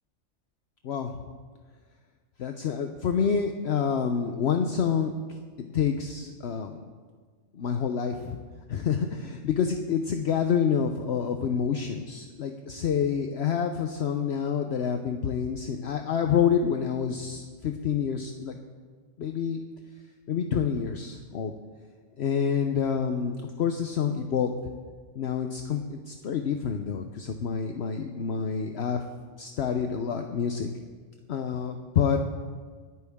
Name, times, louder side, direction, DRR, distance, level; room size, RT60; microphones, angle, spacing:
voice 1, 2.4-5.1 5.6-6.8 7.6-8.4 8.7-18.6 19.2-19.6 20.3-21.5 22.2-24.5 25.2-29.0 29.4-30.7 31.3-32.2, left 7 dB, 60° left, 5 dB, 1.0 m, -27 dB
25.5 x 9.2 x 3.6 m, 1.5 s
omnidirectional pair, 1.3 m